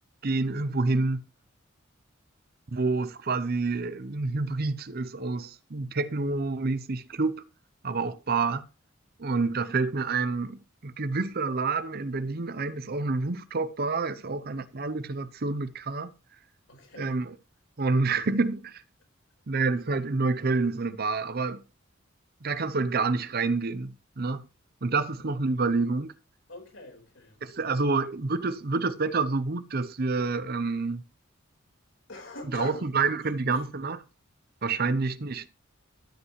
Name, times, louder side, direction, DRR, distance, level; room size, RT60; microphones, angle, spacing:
voice 1, 0.2-1.2 2.7-7.5 7.8-8.7 9.2-16.1 17.0-17.3 17.8-18.8 19.5-21.6 22.4-24.4 24.8-26.1 27.4-31.0 32.5-34.0 34.6-35.5, right 3 dB, 50° right, 0.7 m, -28 dB
voice 2, 16.7-17.2 26.5-27.4 27.8-28.0 32.1-32.9 33.2-33.7 34.7-34.9, left 2 dB, 70° left, 4.7 m, -43 dB
13.0 x 8.1 x 3.1 m
head